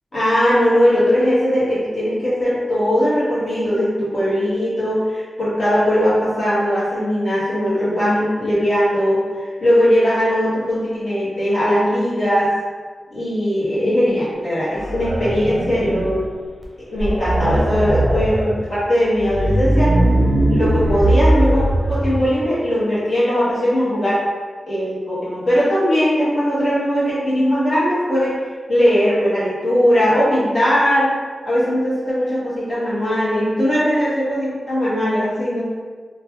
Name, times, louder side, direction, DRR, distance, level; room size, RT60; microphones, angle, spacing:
voice 1, 0.1-12.5 13.1-16.2 16.9-19.9 20.5-24.2 24.7-28.4 28.7-31.1 31.4-35.6, equal, 50° left, -10 dB, 1.3 m, -19 dB
sound 1, 14.8-16.3 16.6-16.7 17.0-18.5 19.2-22.3, right 1 dB, 25° right, 0.6 m, -19 dB
3.0 x 2.2 x 2.9 m, 1.5 s
wide cardioid pair, 90°, 0 cm